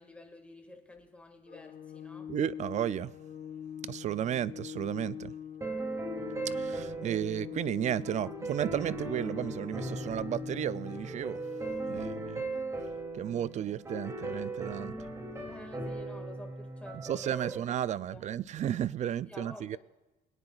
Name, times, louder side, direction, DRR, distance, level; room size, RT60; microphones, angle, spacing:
voice 1, 0.0-2.3 7.0-7.5 8.2-8.4 11.9-12.2 15.4-17.6 18.1-18.3 19.0-19.8, left 1 dB, 5° left, 1.9 m, -50 dB
Organ, 1.5-12.4, left 8 dB, 55° left, 1.1 m, -44 dB
voice 2, 2.3-3.1 3.9-5.3 6.5-11.4 11.9-12.4 13.1-15.0 16.9-19.8, right 10 dB, 45° right, 0.4 m, -33 dB
sound 1, 5.6-17.6, right 2 dB, 15° right, 2.7 m, -38 dB
22.0 x 9.6 x 2.4 m
cardioid pair, 110°, 17 cm